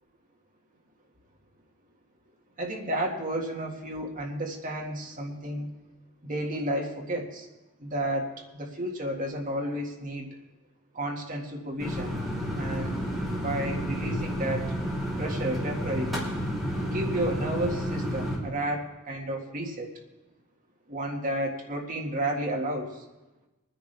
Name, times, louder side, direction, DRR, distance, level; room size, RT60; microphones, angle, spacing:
voice 1, 2.6-5.7 6.2-7.5 7.8-10.3 10.9-12.2 12.6-13.0 13.4-14.7 15.2-16.3 16.8-19.9 20.9-23.0, right 1 dB, 40° right, 1 dB, 1.8 m, -32 dB
sound 1, 11.8-18.4, equal, ahead, 3.2 m, -31 dB
25.0 x 10.0 x 3.4 m, 1.1 s
head